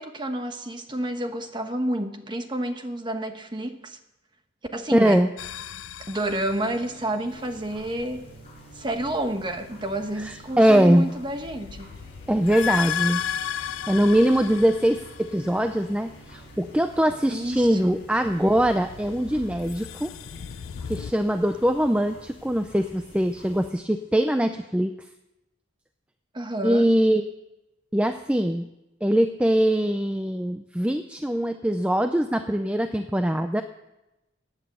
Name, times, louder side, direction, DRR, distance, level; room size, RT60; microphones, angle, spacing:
voice 1, 0.0-4.0 4.7-5.2 6.1-8.2 8.7-12.0 17.3-18.0 26.3-26.9, right 1 dB, 25° right, 6 dB, 1.1 m, -30 dB
voice 2, 4.9-5.3 10.2-11.1 12.3-20.1 20.9-24.9 26.6-27.2 27.9-28.7 29.0-33.6, equal, 5° right, 7 dB, 0.4 m, -22 dB
sound 1, 5.4-7.3 11.2-15.7 18.2-21.1, left 8 dB, 80° left, 0.4 m, -34 dB
sound 2, 6.2-24.5, right 2 dB, 50° left, 4.4 m, -52 dB
sound 3, 7.3-23.7, left 1 dB, 30° left, 6.1 m, -50 dB
16.0 x 8.9 x 6.9 m, 0.96 s
head